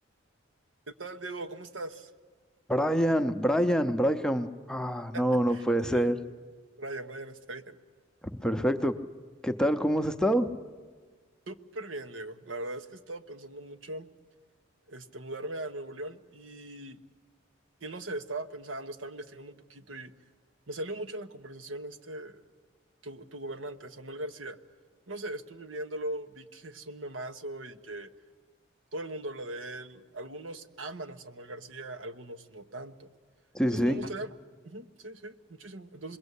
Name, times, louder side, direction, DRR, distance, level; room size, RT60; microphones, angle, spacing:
voice 1, 1.0-2.1 5.1-5.2 5.5-6.1 6.8-7.8 11.5-14.1 14.9-17.0 17.8-20.1 20.7-22.4 23.0-24.6 25.1-28.1 28.9-33.1 33.7-34.3 34.6-36.2, right 1 dB, 85° right, 8 dB, 1.2 m, -40 dB
voice 2, 2.7-6.2 8.4-8.9 9.4-10.5 33.5-34.0, equal, 5° left, 7 dB, 0.7 m, -26 dB
27.0 x 21.5 x 8.3 m, 1.5 s
head